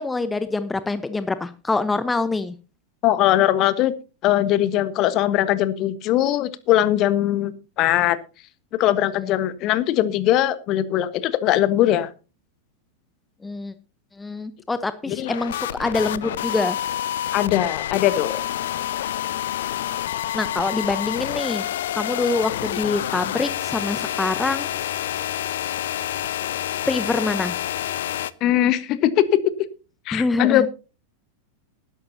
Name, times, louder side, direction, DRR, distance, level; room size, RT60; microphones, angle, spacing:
voice 1, 0.0-2.5 9.2-9.3 13.4-13.7 14.2-16.8 20.3-21.7 21.9-24.7 26.9-27.6 30.1-30.7, left 3 dB, 10° left, 13 dB, 1.0 m, -25 dB
voice 2, 3.0-3.9 4.2-7.5 7.8-8.2 8.7-12.1 15.1-15.3 17.3-18.4 28.4-29.3 30.1-30.7, left 13 dB, 40° left, 14 dB, 1.3 m, -20 dB
sound 1, 15.2-28.3, left 12 dB, 60° left, 0.8 m, -28 dB
19.5 x 11.0 x 2.8 m, 0.32 s
figure-of-eight pair, 90°, 0 cm